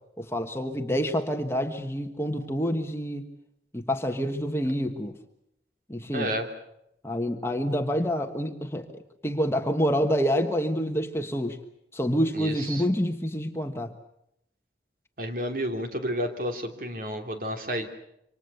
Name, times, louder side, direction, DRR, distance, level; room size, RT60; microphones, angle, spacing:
voice 1, 0.2-3.3 3.7-5.1 5.9-6.3 7.0-11.6 11.9-13.9, equal, 15° left, 5 dB, 1.4 m, -27 dB
voice 2, 6.1-6.5 12.3-12.8 15.2-17.9, equal, 50° right, 4 dB, 2.9 m, -31 dB
27.5 x 25.5 x 6.9 m, 0.80 s
head